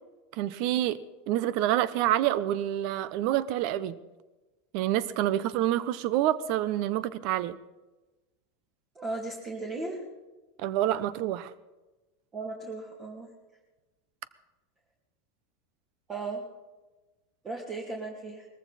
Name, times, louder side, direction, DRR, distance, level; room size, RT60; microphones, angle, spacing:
voice 1, 0.3-1.0 1.3-4.0 4.7-7.6 10.6-11.5, right 13 dB, 55° right, 17 dB, 0.8 m, -27 dB
voice 2, 8.9-10.0 12.3-13.3 16.1-16.4 17.4-18.5, right 3 dB, 25° right, -1 dB, 2.5 m, -36 dB
20.0 x 14.5 x 4.2 m, 1.1 s
supercardioid pair, 125°, 0 cm